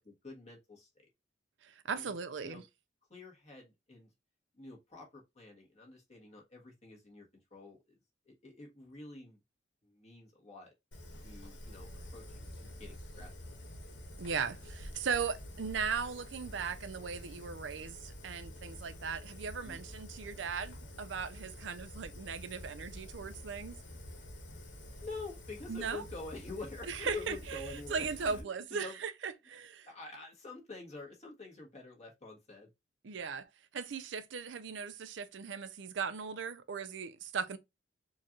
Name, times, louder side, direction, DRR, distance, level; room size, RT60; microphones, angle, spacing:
voice 1, 0.2-1.1 1.9-2.2 2.4-2.6 3.1-4.1 4.5-8.0 8.2-9.4 9.8-10.7 11.2-13.3 19.6-19.8 25.0-29.0 29.8-32.7, left 3 dB, 40° left, 1.5 m, -47 dB
voice 2, 1.6-2.6 14.2-23.7 25.7-26.0 26.9-29.9 33.0-33.5 33.7-37.6, right 6 dB, 85° right, 0.5 m, -38 dB
Fire, 10.9-28.4, left 1 dB, 80° left, 1.2 m, -48 dB
4.4 x 2.5 x 2.9 m
head